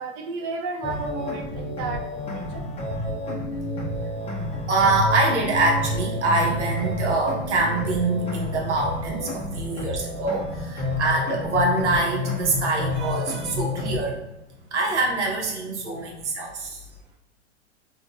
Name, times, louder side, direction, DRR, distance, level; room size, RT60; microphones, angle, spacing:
voice 1, 0.0-2.7, right 3 dB, 35° right, 1 dB, 0.6 m, -33 dB
sound 1, 0.8-14.0, left 1 dB, 15° left, 0.6 m, -29 dB
voice 2, 4.7-14.2 14.7-16.8, right 2 dB, 85° right, -1 dB, 1.0 m, -24 dB
3.6 x 2.6 x 2.4 m, 0.88 s
hypercardioid pair, 120°, 34 cm